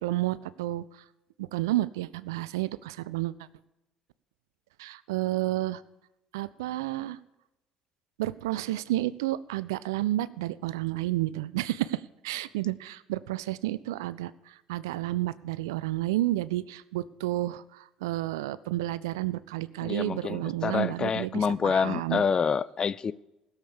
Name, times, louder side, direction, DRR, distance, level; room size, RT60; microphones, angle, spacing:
voice 1, 0.0-0.8 1.4-3.3 4.8-5.8 6.3-7.2 8.2-22.2, right 16 dB, 85° right, 0.4 m, -31 dB
voice 2, 19.8-23.1, left 6 dB, 40° left, 0.5 m, -27 dB
16.5 x 7.2 x 6.8 m
hypercardioid pair, 60°, 2 cm